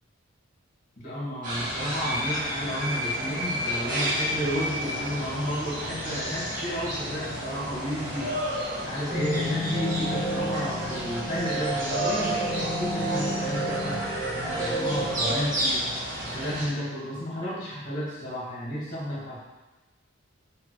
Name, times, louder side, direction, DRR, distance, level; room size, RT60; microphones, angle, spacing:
voice 1, 1.0-8.3 8.8-14.0 14.3-15.9 16.3-19.4, equal, 40° left, -6 dB, 2.4 m, -32 dB
sound 1, 1.4-16.7, equal, 40° right, 1.7 m, -31 dB
sound 2, 9.1-15.4, right 1 dB, 20° left, 1.4 m, -30 dB
7.5 x 3.8 x 4.7 m, 1.1 s
head